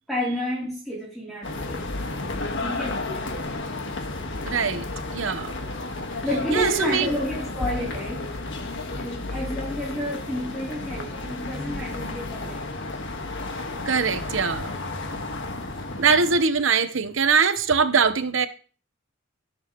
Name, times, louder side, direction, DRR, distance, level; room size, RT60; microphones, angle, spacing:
voice 1, 0.1-2.0 2.6-3.3 6.2-8.3 8.9-12.6, equal, ahead, 3.2 m, -30 dB
sound 1, 1.4-16.4, left 2 dB, 65° left, 1.5 m, -32 dB
voice 2, 4.4-4.9 5.1-5.6 6.5-7.1 13.9-14.7 16.0-18.5, right 5 dB, 70° right, 0.9 m, -22 dB
18.0 x 7.0 x 3.0 m
head